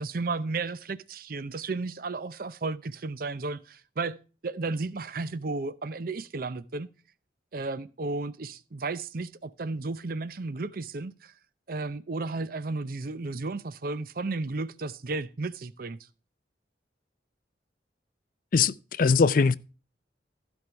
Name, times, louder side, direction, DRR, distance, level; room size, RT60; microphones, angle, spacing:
voice 1, 0.0-6.9 7.5-11.3 11.7-16.0, right 3 dB, 55° right, 0.6 m, -33 dB
voice 2, 18.5-19.6, left 5 dB, 50° left, 0.4 m, -21 dB
15.5 x 5.4 x 4.5 m
head